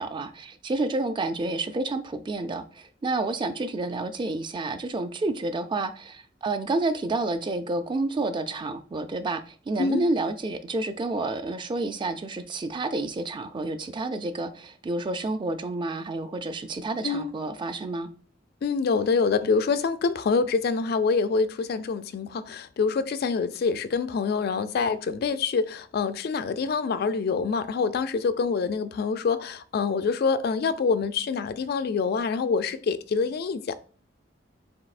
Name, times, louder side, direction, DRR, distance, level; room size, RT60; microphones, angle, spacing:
voice 1, 0.0-18.1, right 2 dB, 25° right, 0.3 m, -29 dB
voice 2, 18.6-33.8, left 5 dB, 60° left, 0.3 m, -26 dB
7.3 x 2.7 x 2.4 m
head